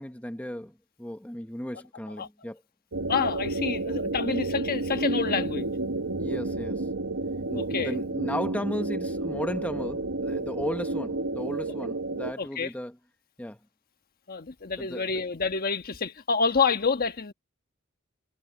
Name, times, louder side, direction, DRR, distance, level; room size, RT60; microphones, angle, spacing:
voice 1, 0.0-2.6 4.3-4.5 6.2-6.9 7.5-13.0 13.4-13.6 14.8-15.1, left 1 dB, 5° left, 0.9 m, -35 dB
sound 1, 2.9-12.3, right 2 dB, 80° right, 1.2 m, -31 dB
voice 2, 3.1-5.7 7.5-7.9 12.4-12.7 14.3-17.3, left 5 dB, 45° left, 1.3 m, -28 dB
head